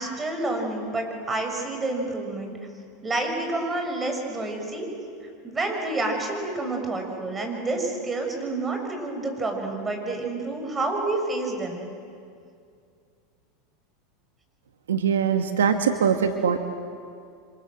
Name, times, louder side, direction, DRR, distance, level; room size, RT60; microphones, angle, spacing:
voice 1, 0.0-2.6 3.0-4.9 5.4-11.9, right 2 dB, 20° right, 3 dB, 7.0 m, -29 dB
voice 2, 14.9-16.6, right 7 dB, 85° right, 7 dB, 1.5 m, -22 dB
28.5 x 26.0 x 7.8 m, 2.3 s
hypercardioid pair, 95°, 0 cm